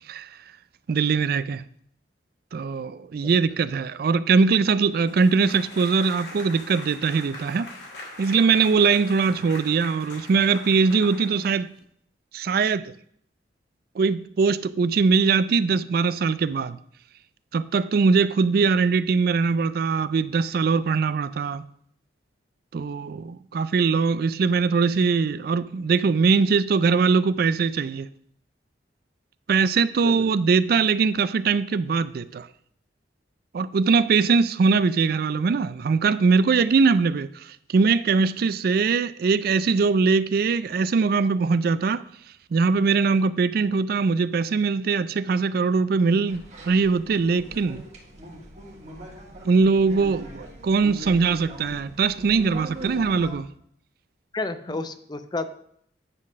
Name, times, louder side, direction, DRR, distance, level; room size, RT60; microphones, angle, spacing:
voice 1, 0.9-1.6 2.5-7.7 8.2-11.7 12.3-12.9 14.0-16.8 17.5-21.6 22.7-28.1 29.5-32.5 33.5-42.0 42.5-47.8 49.4-53.5, right 5 dB, 55° right, 16 dB, 0.4 m, -21 dB
sound 1, 5.0-11.8, left 2 dB, 70° left, 2.8 m, -41 dB
sound 2, 46.3-53.3, equal, 40° right, 1.9 m, -40 dB
voice 2, 54.3-55.5, left 3 dB, 25° left, 10 dB, 0.5 m, -31 dB
9.7 x 4.0 x 6.3 m, 0.66 s
head